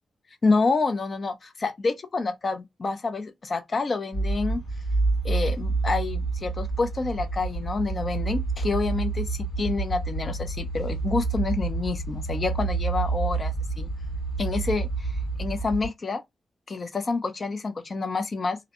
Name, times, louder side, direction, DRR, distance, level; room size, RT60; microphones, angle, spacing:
voice 1, 0.4-4.6 5.2-13.9 14.4-15.1 15.4-16.2 16.7-18.6, left 3 dB, 30° left, 0.4 m, -28 dB
sound 1, 4.1-15.9, right 3 dB, 75° left, 1.3 m, -28 dB
2.5 x 2.1 x 2.7 m
wide cardioid pair, 180°, 0 cm